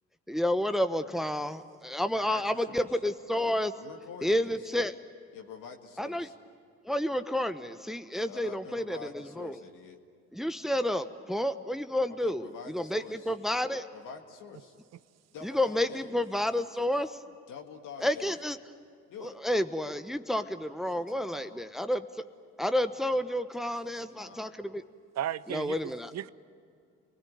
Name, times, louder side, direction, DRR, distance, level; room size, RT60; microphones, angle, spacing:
voice 1, 0.3-3.7 4.2-4.9 6.0-6.3 6.8-9.5 10.3-13.8 15.4-17.2 18.0-18.6 19.2-22.1 22.6-24.8 25.5-26.1, left 1 dB, ahead, 1.1 m, -30 dB
voice 2, 2.0-2.9 3.8-4.7 5.3-6.3 8.1-10.0 12.1-13.3 13.9-14.7 15.3-16.2 17.5-18.4 19.1-19.4 21.0-21.6 23.8-24.5, left 6 dB, 65° left, 1.9 m, -47 dB
voice 3, 25.2-26.3, right 11 dB, 50° right, 0.7 m, -35 dB
29.0 x 20.0 x 9.5 m
hypercardioid pair, 45°, 34 cm